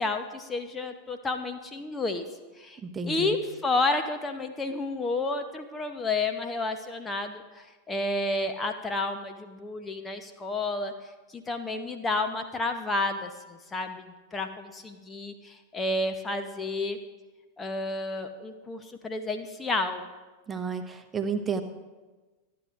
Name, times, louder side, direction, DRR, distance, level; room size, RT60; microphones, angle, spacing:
voice 1, 0.0-2.2 2.6-2.8 3.1-10.9 11.3-17.0 17.6-20.0, left 2 dB, 15° left, 7 dB, 0.8 m, -31 dB
voice 2, 2.8-3.3 20.5-21.6, right 5 dB, 15° right, 7 dB, 1.0 m, -31 dB
26.5 x 9.5 x 2.5 m, 1.2 s
figure-of-eight pair, 90°, 0 cm